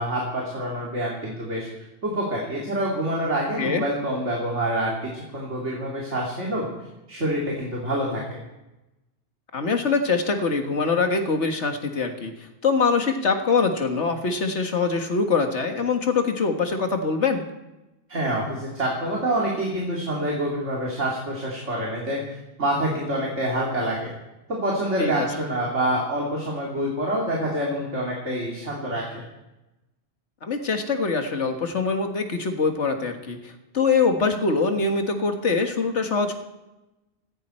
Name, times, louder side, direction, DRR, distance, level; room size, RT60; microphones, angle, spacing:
voice 1, 0.0-1.7 2.0-6.7 7.1-8.2 18.1-22.2 22.6-24.1 24.5-29.2, right 1 dB, 80° right, -3 dB, 3.2 m, -26 dB
voice 2, 9.5-12.3 12.6-17.4 25.0-25.3 30.5-36.4, left 4 dB, 75° left, 5 dB, 1.9 m, -23 dB
18.5 x 15.5 x 4.4 m, 0.98 s
omnidirectional pair, 1.2 m